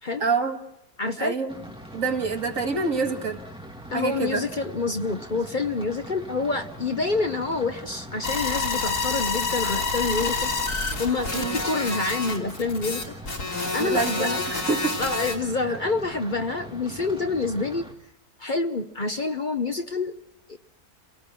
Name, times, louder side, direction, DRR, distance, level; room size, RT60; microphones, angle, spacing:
voice 1, 0.2-0.6 1.2-1.5 1.9-3.4 3.9-4.5 11.3-11.6 13.8-15.0 15.6-15.8, right 4 dB, 55° right, 3 dB, 2.2 m, -26 dB
voice 2, 1.0-1.4 3.9-10.5 11.0-13.1 13.7-14.4 15.0-17.9 18.4-20.2 20.5-20.6, left 3 dB, 40° left, 7 dB, 0.8 m, -27 dB
sound 1, 1.5-17.9, right 1 dB, 5° right, 3.1 m, -42 dB
sound 2, 8.2-15.3, left 3 dB, 85° left, 3.7 m, -28 dB
28.5 x 18.0 x 6.1 m, 0.82 s
omnidirectional pair, 1.6 m